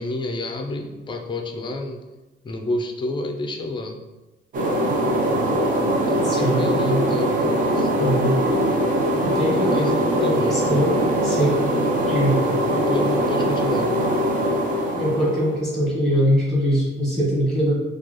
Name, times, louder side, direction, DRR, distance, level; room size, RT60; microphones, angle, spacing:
voice 1, 0.0-2.0 2.4-4.0 6.0-8.1 9.7-10.6 12.7-14.0, left 2 dB, 25° left, 3 dB, 0.4 m, -29 dB
sound 1, 4.5-15.6, right 1 dB, 45° right, 0.5 m, -22 dB
voice 2, 6.2-7.0 8.0-8.3 9.2-11.0 11.2-11.6 12.1-12.4 14.9-17.8, equal, 5° left, -5 dB, 1.2 m, -22 dB
4.7 x 2.3 x 2.9 m, 1.1 s
cardioid pair, 160°, 20 cm